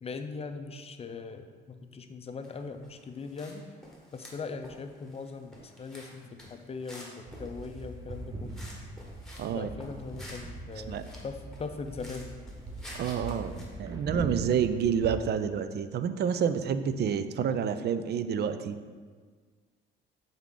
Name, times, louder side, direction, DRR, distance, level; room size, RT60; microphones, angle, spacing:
voice 1, 0.0-3.6 4.1-8.6 9.5-12.3, left 4 dB, 30° left, 8 dB, 0.5 m, -40 dB
sound 1, 2.4-3.6 3.8-9.5 9.8-13.6, left 1 dB, ahead, 1.3 m, -50 dB
sound 2, 7.3-15.1, right 2 dB, 20° right, 0.7 m, -41 dB
voice 2, 9.4-9.7 10.9-11.0 12.9-18.8, right 7 dB, 55° right, 11 dB, 0.4 m, -29 dB
7.1 x 3.6 x 3.8 m, 1.6 s
cardioid pair, 90°, 20 cm